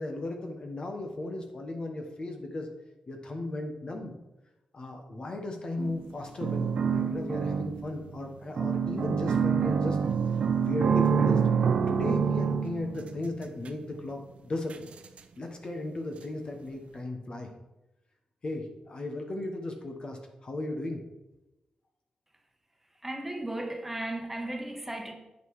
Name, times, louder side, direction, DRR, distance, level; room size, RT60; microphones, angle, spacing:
voice 1, 0.0-2.7 3.1-4.1 4.7-10.0 10.3-11.4 11.9-14.9 15.4-17.5 18.4-21.0, left 2 dB, 45° left, 4 dB, 1.2 m, -36 dB
sound 1, 5.8-6.1 6.4-8.1 8.6-13.7 14.7-14.8 15.2-15.3, right 6 dB, 65° right, 0.6 m, -26 dB
voice 2, 23.0-25.1, right 1 dB, 10° right, 2 dB, 1.3 m, -35 dB
8.4 x 5.3 x 4.7 m, 0.98 s
cardioid pair, 95°, 2 cm